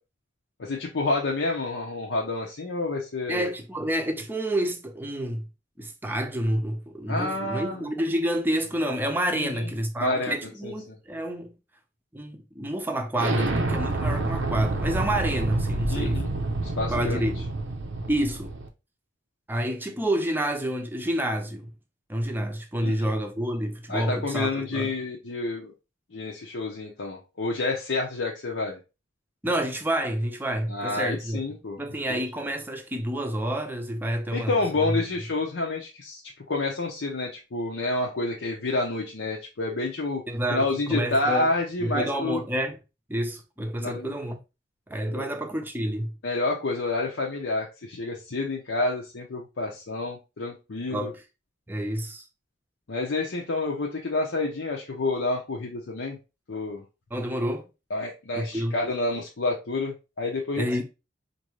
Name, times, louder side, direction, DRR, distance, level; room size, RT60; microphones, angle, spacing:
voice 1, 0.6-3.5 7.1-7.9 9.3-9.7 10.0-10.3 10.6-11.0 15.9-16.3 16.8-17.3 22.8-23.1 23.9-25.7 26.1-28.8 30.7-31.8 32.1-32.2 34.3-36.2 36.5-40.2 40.5-42.4 43.8-44.1 45.1-45.3 46.2-51.1 52.9-56.2 56.5-56.8 57.9-60.8, left 2 dB, 85° left, 0.7 m, -29 dB
voice 2, 3.3-5.5 5.8-11.5 12.1-16.3 16.9-17.5 18.1-18.6 19.5-21.7 22.1-24.9 29.4-31.4 31.8-35.0 40.3-41.5 41.8-42.8 43.1-44.4 44.9-46.1 50.9-51.1 51.7-52.2 57.1-57.7 58.3-58.7 60.6-60.8, right 1 dB, 10° right, 0.5 m, -28 dB
Explosion, 13.2-18.7, right 2 dB, 90° right, 0.7 m, -28 dB
4.5 x 2.6 x 3.1 m
head